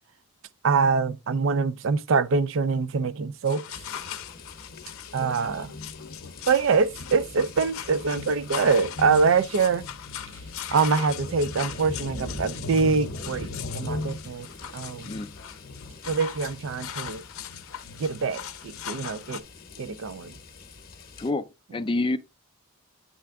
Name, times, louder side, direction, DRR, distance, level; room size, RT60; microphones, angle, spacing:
voice 1, 0.6-3.6 5.1-5.7 6.5-9.8 10.7-13.5 13.7-14.5 14.7-15.1 16.1-17.2 18.0-19.4 19.8-20.3, right 5 dB, 60° right, 0.4 m, -24 dB
sound 1, 3.5-19.4, left 5 dB, 70° left, 0.6 m, -37 dB
sound 2, 3.7-21.3, left 3 dB, 40° left, 0.9 m, -44 dB
voice 2, 21.2-22.2, left 2 dB, 25° left, 0.4 m, -28 dB
8.5 x 3.3 x 3.5 m
head